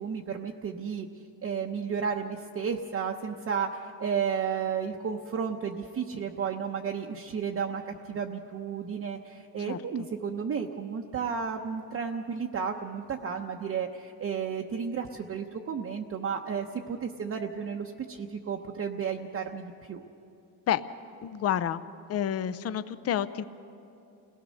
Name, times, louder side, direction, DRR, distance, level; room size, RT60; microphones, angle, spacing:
voice 1, 0.0-20.0, right 6 dB, 35° right, 2 dB, 0.9 m, -33 dB
voice 2, 21.2-21.8 22.1-23.4, left 10 dB, 35° left, 13 dB, 0.6 m, -29 dB
29.0 x 18.5 x 6.4 m, 2.8 s
cardioid pair, 160°, 41 cm